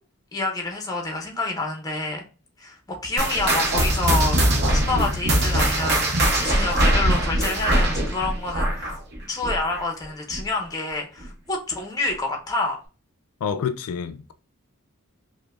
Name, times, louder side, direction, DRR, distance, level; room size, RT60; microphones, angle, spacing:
voice 1, 0.3-2.2 2.6-4.4 4.7-9.0 9.3-12.8, left 3 dB, 15° left, 0.6 m, -28 dB
sound 1, 3.2-10.0 10.3-10.6 11.2-11.3 12.1-12.2, right 1 dB, 50° right, 0.8 m, -22 dB
voice 2, 13.4-14.3, left 7 dB, 80° left, 0.3 m, -28 dB
5.0 x 2.0 x 2.3 m
head